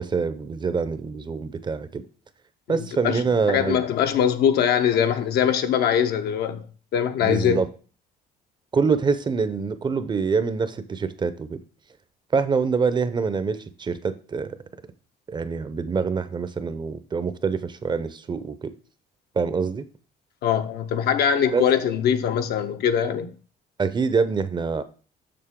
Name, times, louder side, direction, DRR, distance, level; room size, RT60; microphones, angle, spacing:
voice 1, 0.0-2.0 2.7-3.9 7.2-7.7 8.7-11.6 12.3-14.6 15.3-18.7 19.4-19.9 21.5-21.6 23.8-24.8, right 5 dB, 25° right, 0.6 m, -25 dB
voice 2, 2.7-3.2 3.5-6.6 6.9-7.6 20.4-23.3, left 8 dB, 70° left, 0.8 m, -22 dB
6.8 x 6.1 x 3.7 m
cardioid pair, 110°, 17 cm